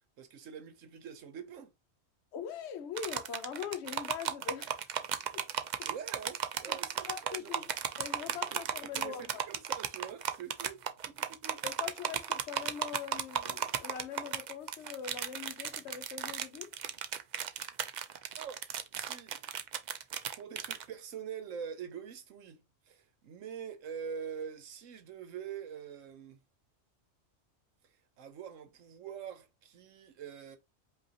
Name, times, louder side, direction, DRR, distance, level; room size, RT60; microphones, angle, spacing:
voice 1, 0.2-1.7 5.8-7.7 8.3-10.8 11.1-11.6 17.3-17.5 18.4-18.6 18.9-19.8 20.3-26.4 28.2-30.6, right 7 dB, 85° right, 1.2 m, -45 dB
voice 2, 2.3-4.8 5.3-5.5 5.8-5.9 6.7-6.8 7.1-7.7 8.0-9.4 11.6-16.7, left 8 dB, 65° left, 0.9 m, -42 dB
sound 1, 3.0-20.8, right 8 dB, 70° right, 0.4 m, -35 dB
5.1 x 2.7 x 2.8 m
omnidirectional pair, 1.3 m